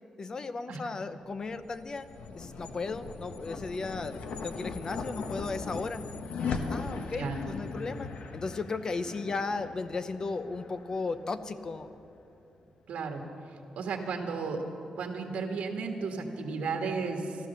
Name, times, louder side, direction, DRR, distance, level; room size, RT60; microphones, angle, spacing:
voice 1, 0.2-2.1 2.3-4.2 4.4-6.1 6.7-11.9, left 3 dB, 30° left, 12 dB, 0.6 m, -35 dB
sound 1, 1.5-12.0, left 4 dB, 75° left, 1.1 m, -39 dB
voice 2, 12.9-13.2 13.7-14.6 15.0-17.4, right 4 dB, 85° right, 3 dB, 1.6 m, -33 dB
14.0 x 13.5 x 6.9 m, 2.8 s
wide cardioid pair, 170°, 2 cm